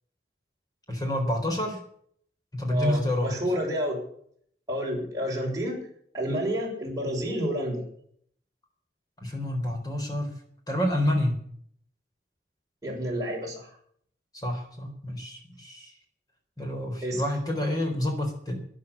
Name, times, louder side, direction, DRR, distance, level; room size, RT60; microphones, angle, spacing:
voice 1, 0.9-1.8 2.5-3.3 9.2-10.3 10.7-11.4 14.3-15.9 16.6-18.6, left 1 dB, 20° left, 3 dB, 4.2 m, -28 dB
voice 2, 2.7-4.0 4.7-5.9 6.1-7.8 12.8-13.7 17.0-17.2, equal, 20° right, -3 dB, 6.3 m, -29 dB
13.0 x 10.5 x 8.4 m, 0.63 s
head